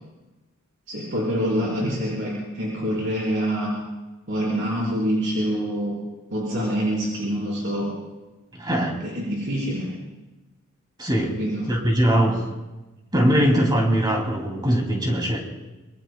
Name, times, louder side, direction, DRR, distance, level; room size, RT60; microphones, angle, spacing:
voice 1, 0.9-3.7 4.3-6.0 6.3-7.9 9.0-9.9 11.3-11.6, equal, 55° right, -6 dB, 4.4 m, -26 dB
voice 2, 8.5-9.0 11.0-11.4 11.7-12.4 13.1-15.4, right 1 dB, 20° right, 1 dB, 2.7 m, -21 dB
26.0 x 22.5 x 2.3 m, 1.1 s
head